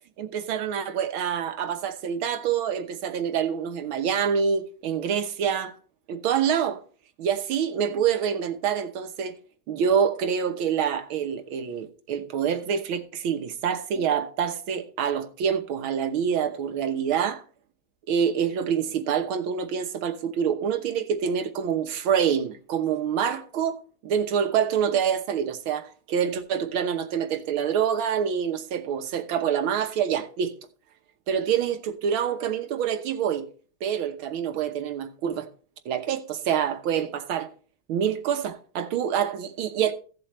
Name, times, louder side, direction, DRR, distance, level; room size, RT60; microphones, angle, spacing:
voice 1, 0.2-5.8 6.1-6.8 7.2-9.4 9.7-17.4 18.1-30.5 31.3-33.5 33.8-35.5 35.9-37.5 37.9-39.9, right 8 dB, 85° right, 1.9 m, -26 dB
15.5 x 7.7 x 3.1 m
omnidirectional pair, 2.2 m